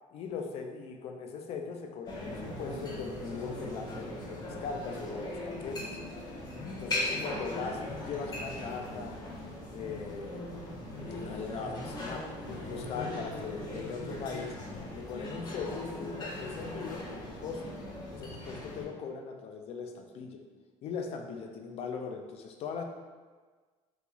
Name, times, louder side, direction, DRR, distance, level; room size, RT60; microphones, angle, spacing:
voice 1, 0.1-6.0 6.7-9.2 9.7-10.5 11.2-14.6 14.9-17.8 18.1-20.4 20.8-22.8, left 5 dB, 45° left, 4 dB, 0.4 m, -40 dB
sound 1, 2.1-18.8, left 1 dB, 30° left, 0.8 m, -39 dB
3.9 x 2.3 x 2.9 m, 1.4 s
cardioid pair, 135°, 14 cm